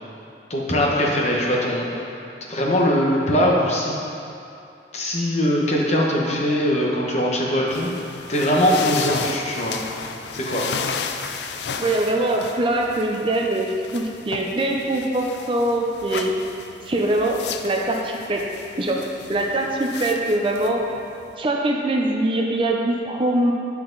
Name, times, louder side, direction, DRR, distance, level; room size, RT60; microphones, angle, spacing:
voice 1, 0.5-1.9 2.5-4.0 4.9-7.9 8.3-9.7 10.3-10.6, equal, 40° left, -2 dB, 1.1 m, -21 dB
sound 1, 7.7-21.3, left 6 dB, 75° left, 0.4 m, -34 dB
voice 2, 11.8-16.4 16.9-17.4 17.6-18.4 18.8-20.8 21.4-23.5, right 1 dB, 30° right, 0 dB, 0.6 m, -23 dB
9.9 x 5.8 x 3.9 m, 2.7 s
head